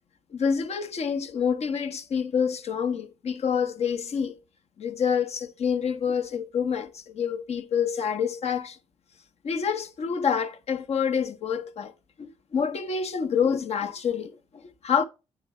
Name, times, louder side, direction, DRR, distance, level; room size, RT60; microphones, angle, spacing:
voice 1, 0.3-4.4 4.8-8.8 9.4-11.9 12.2-15.0, left 7 dB, 55° left, 0.8 m, -27 dB
8.8 x 3.7 x 3.1 m
supercardioid pair, 55°, 13 cm